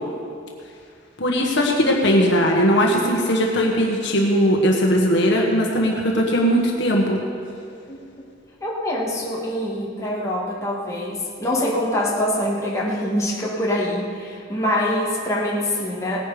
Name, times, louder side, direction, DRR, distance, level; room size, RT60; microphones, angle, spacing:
voice 1, 1.2-7.2, equal, 65° left, -1 dB, 1.6 m, -19 dB
voice 2, 8.6-16.2, left 1 dB, 15° left, -5 dB, 2.2 m, -24 dB
18.5 x 10.0 x 5.1 m, 2.4 s
head